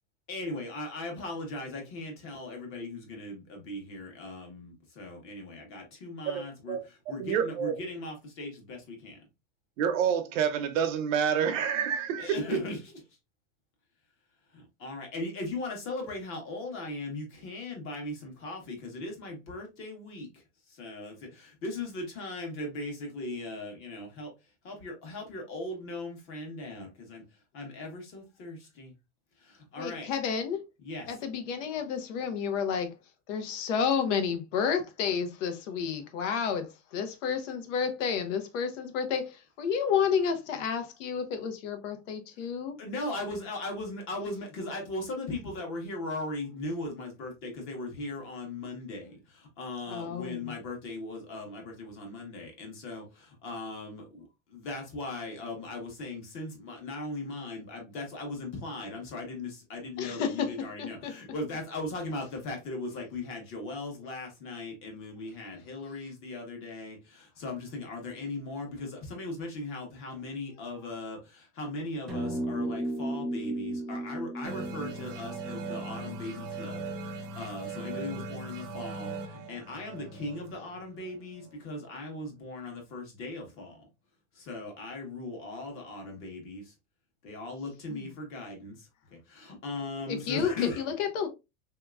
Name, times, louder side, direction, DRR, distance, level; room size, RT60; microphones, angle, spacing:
voice 1, 0.3-9.2 12.2-12.9 14.5-24.3 24.6-27.2 27.5-28.9 29.5-30.1 30.8-31.1 42.4-42.5 42.8-54.2 54.5-83.8 84.3-86.7 87.2-90.8, left 2 dB, 30° left, 1.2 m, -38 dB
voice 2, 6.3-6.8 7.2-7.7 9.8-12.3, right 8 dB, 65° right, 0.8 m, -28 dB
voice 3, 29.8-30.6 31.1-32.9 33.3-42.8 49.9-50.5 60.0-60.5 60.8-61.1 87.9-88.1 90.1-91.3, left 7 dB, 60° left, 0.9 m, -31 dB
sound 1, 72.1-76.6, right 1 dB, ahead, 0.3 m, -35 dB
sound 2, 74.4-81.7, right 3 dB, 35° right, 0.7 m, -40 dB
3.4 x 2.8 x 2.3 m
supercardioid pair, 155°, 41 cm